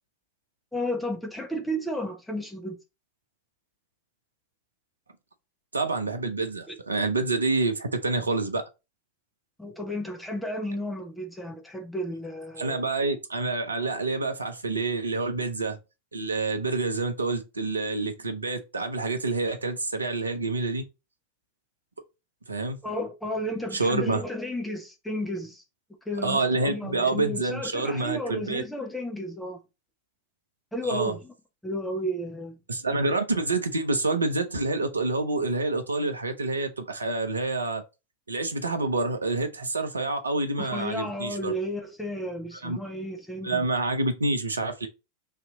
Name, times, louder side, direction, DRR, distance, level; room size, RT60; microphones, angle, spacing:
voice 1, 0.7-2.8 6.7-6.8 9.6-12.8 22.8-25.6 26.1-29.6 30.7-31.3 31.6-32.6 40.6-43.7, equal, 5° left, 1.0 m, -33 dB
voice 2, 5.7-8.6 12.6-15.8 16.1-20.8 22.5-22.8 23.7-24.2 26.2-28.6 30.8-31.2 32.7-37.8 38.3-41.5 42.6-42.8 43.4-44.9, right 3 dB, 75° right, 0.7 m, -27 dB
3.3 x 2.9 x 3.9 m
figure-of-eight pair, 90°, 0 cm